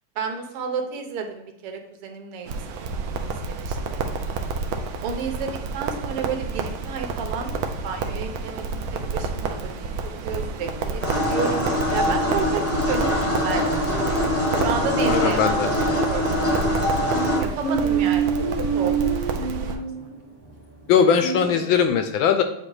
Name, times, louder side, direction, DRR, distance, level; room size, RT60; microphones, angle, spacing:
voice 1, 0.2-3.1 3.5-4.0 5.0-7.5 7.8-9.9 10.2-15.6 16.1-16.8 17.4-18.3 18.7-19.9, right 5 dB, 90° right, 4 dB, 1.8 m, -32 dB
Crackle, 2.5-19.8, right 4 dB, 75° right, 1.4 m, -30 dB
sound 1, 7.5-21.9, right 6 dB, 35° right, 1.9 m, -31 dB
sound 2, 11.0-17.4, left 1 dB, 10° left, 0.8 m, -23 dB
voice 2, 15.1-15.7 20.9-22.4, left 7 dB, 75° left, 7 dB, 1.2 m, -20 dB
8.4 x 2.9 x 4.7 m, 0.79 s
omnidirectional pair, 2.4 m